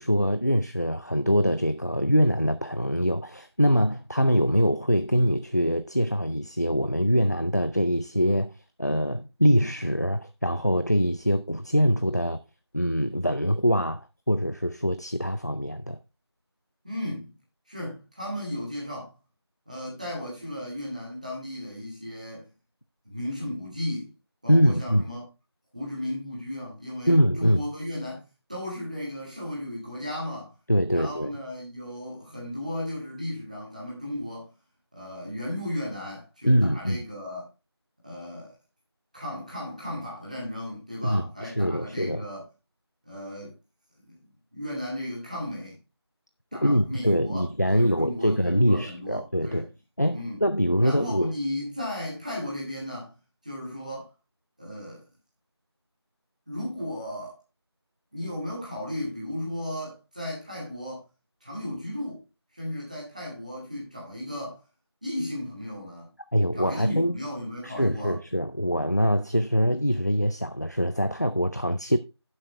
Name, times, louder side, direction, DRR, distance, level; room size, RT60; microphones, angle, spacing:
voice 1, 0.0-8.5 8.8-12.4 12.7-16.0 24.5-25.0 27.1-27.6 30.7-31.3 36.4-37.0 41.0-42.2 46.5-49.7 50.0-51.3 66.3-67.2 67.6-72.0, equal, 40° left, 0.5 m, -24 dB
voice 2, 16.8-17.3 17.7-19.1 19.7-22.5 23.0-24.1 24.4-25.2 25.7-30.5 30.9-34.5 34.9-37.5 38.0-38.5 39.1-42.4 43.0-43.5 44.0-44.2 44.5-45.8 46.5-49.7 50.1-50.4 50.8-53.1 53.4-54.1 54.6-55.0 56.5-57.4 58.1-61.1 61.4-62.2 62.5-64.6 65.0-66.1 66.5-68.2, left 1 dB, 15° right, 2.3 m, -35 dB
10.5 x 7.6 x 3.2 m
figure-of-eight pair, 180°, 14 cm